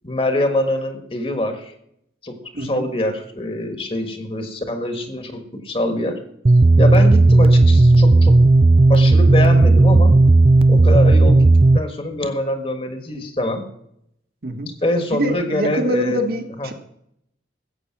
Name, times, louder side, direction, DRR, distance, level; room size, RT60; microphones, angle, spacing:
voice 1, 0.0-1.7 2.2-6.2 6.8-8.4 8.9-10.2 10.7-11.5 11.7-13.6 14.8-16.2 16.6-16.7, left 1 dB, 30° left, 7 dB, 1.5 m, -24 dB
voice 2, 2.5-2.9 14.4-14.7 15.1-16.7, right 1 dB, 55° right, 4 dB, 1.6 m, -24 dB
sound 1, 6.4-11.8, right 2 dB, 30° right, 0.4 m, -12 dB
14.5 x 8.4 x 6.0 m, 0.75 s
head